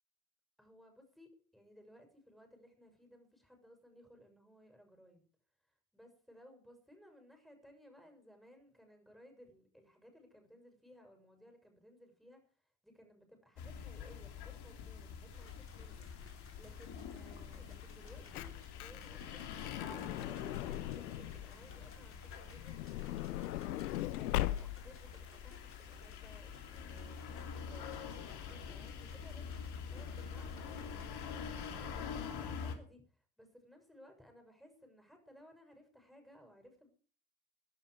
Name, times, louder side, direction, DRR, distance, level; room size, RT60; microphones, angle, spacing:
voice 1, 0.6-5.3 5.7-12.5 12.8-16.1 16.5-23.6 24.1-27.2 27.5-31.2 31.7-36.9, equal, ahead, 4 dB, 6.9 m, -60 dB
sound 1, 13.6-32.7, left 6 dB, 60° left, 3.0 m, -46 dB
sound 2, 15.3-31.8, left 4 dB, 30° left, 3.7 m, -60 dB
Truck / Door, 18.2-21.5 22.5-25.0 25.7-25.8 26.0-26.2, left 15 dB, 85° left, 0.7 m, -39 dB
20.0 x 11.5 x 5.0 m, 0.42 s
hypercardioid pair, 50°, 43 cm